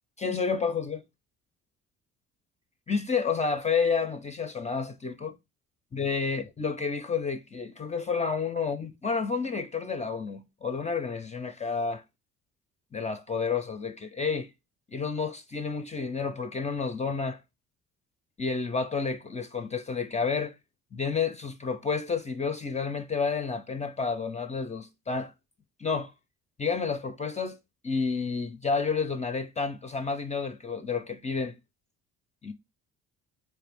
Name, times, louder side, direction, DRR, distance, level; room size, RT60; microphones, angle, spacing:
voice 1, 0.2-1.0 2.9-5.4 5.9-12.0 12.9-14.5 14.9-17.4 18.4-20.6 20.9-25.3 25.8-26.1 26.6-27.6 27.8-31.6 32.4-32.5, left 5 dB, 20° left, 0.5 m, -30 dB
4.5 x 2.5 x 3.3 m
supercardioid pair, 70°, 33 cm